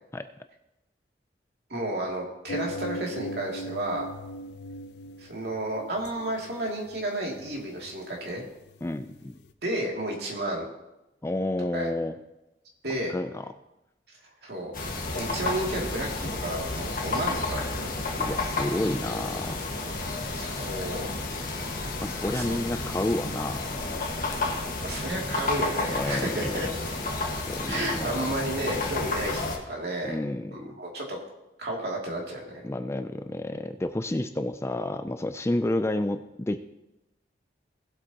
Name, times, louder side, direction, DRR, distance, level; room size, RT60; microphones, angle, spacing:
voice 1, 1.7-4.0 5.2-8.4 9.6-10.7 11.7-11.9 12.8-13.1 14.4-14.8 15.1-17.9 20.3-21.1 22.3-22.5 24.8-26.7 27.7-30.2 30.5-31.2 31.6-32.6, right 1 dB, 60° right, -1 dB, 2.6 m, -32 dB
sound 1, 2.5-9.5, equal, 75° left, 0.6 m, -40 dB
voice 2, 8.8-9.4 11.2-12.2 12.9-13.5 18.2-19.6 22.0-23.6 24.2-24.4 25.9-26.7 27.5-28.4 30.0-30.6 32.6-36.6, left 1 dB, 15° left, 9 dB, 0.4 m, -30 dB
sound 2, 14.7-29.6, left 2 dB, 50° left, 1.6 m, -31 dB
18.5 x 8.0 x 2.9 m, 0.94 s
head